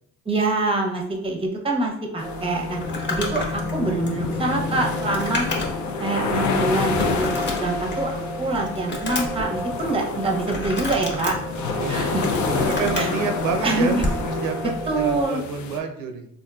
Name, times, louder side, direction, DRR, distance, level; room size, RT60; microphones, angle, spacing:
voice 1, 0.3-2.8 3.1-5.5 6.0-8.1 8.4-11.4 11.9-12.2 12.9-13.1 13.6-14.0 14.9-15.4, right 2 dB, 20° right, 2 dB, 0.6 m, -25 dB
sound 1, 2.2-15.8, left 4 dB, 70° left, 0.5 m, -29 dB
sound 2, 2.2-15.3, left 2 dB, 10° left, 1.0 m, -32 dB
Crumpling crinkling, 2.8-5.9 6.3-6.4 7.0-8.1 8.5-9.5 10.4-11.3 11.9-13.2 13.9-14.2, left 2 dB, 35° left, 1.0 m, -30 dB
voice 2, 11.7-12.1 12.5-16.3, right 5 dB, 85° right, 5 dB, 0.5 m, -29 dB
3.7 x 2.5 x 2.3 m, 0.75 s
cardioid pair, 90°, 30 cm